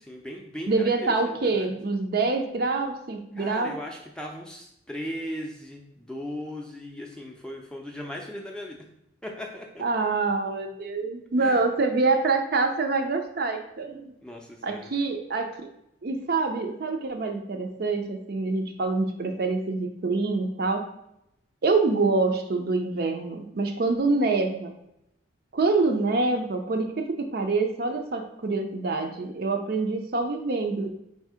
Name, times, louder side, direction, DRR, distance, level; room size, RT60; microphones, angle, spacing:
voice 1, 0.1-1.7 3.4-8.9 9.2-9.8 11.4-11.6 14.2-14.9, equal, 5° left, 0 dB, 0.5 m, -38 dB
voice 2, 0.7-3.8 9.8-14.1 14.6-15.6 16.0-20.9 21.6-24.7 25.5-30.9, right 3 dB, 50° right, 5 dB, 0.5 m, -26 dB
4.1 x 2.7 x 4.8 m, 0.81 s
head